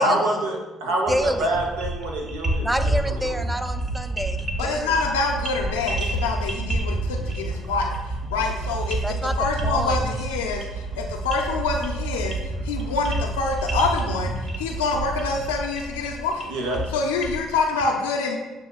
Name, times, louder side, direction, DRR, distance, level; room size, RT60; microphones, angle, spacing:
voice 1, 0.0-3.3 16.5-16.8, right 1 dB, 75° right, 1 dB, 0.7 m, -26 dB
voice 2, 1.1-1.5 2.6-5.0 9.0-9.3 9.6-10.0, equal, 10° right, 9 dB, 0.4 m, -27 dB
sound 1, 1.1-17.8, right 1 dB, 35° right, 0.8 m, -31 dB
sound 2, 3.0-15.4, right 3 dB, 55° right, 1.2 m, -31 dB
voice 3, 4.6-7.9 8.3-12.3 12.6-14.3 14.6-16.5 16.9-18.4, left 4 dB, 85° left, 1 dB, 0.4 m, -26 dB
7.3 x 2.7 x 2.3 m, 1.1 s
hypercardioid pair, 50°, 0 cm